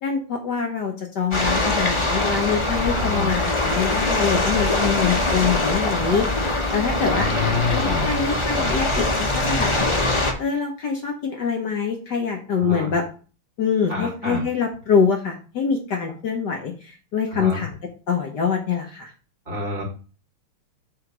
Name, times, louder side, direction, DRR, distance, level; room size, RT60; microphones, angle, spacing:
voice 1, 0.0-6.3 6.7-9.9 10.4-13.0 13.6-17.7 18.1-19.1, left 6 dB, 60° left, 2 dB, 1.4 m, -24 dB
sound 1, 1.3-10.3, left 2 dB, 30° left, 0.5 m, -22 dB
voice 2, 3.0-3.3 6.9-8.1 12.5-12.9 13.9-14.4 17.3-17.6 19.5-19.8, left 4 dB, 25° right, -2 dB, 2.1 m, -28 dB
8.0 x 3.2 x 6.0 m, 0.37 s
omnidirectional pair, 2.3 m